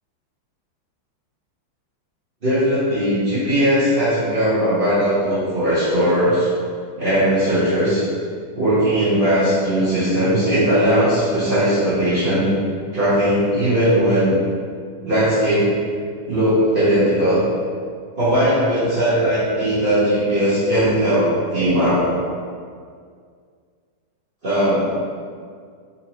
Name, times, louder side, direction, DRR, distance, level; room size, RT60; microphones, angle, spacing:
voice 1, 2.4-6.5 7.0-8.0 8.6-12.5 12.9-14.3 15.0-15.7 16.3-17.5 18.2-22.0 24.4-24.9, equal, 45° right, -12 dB, 0.7 m, -18 dB
4.3 x 2.8 x 2.9 m, 2.1 s
omnidirectional pair, 2.2 m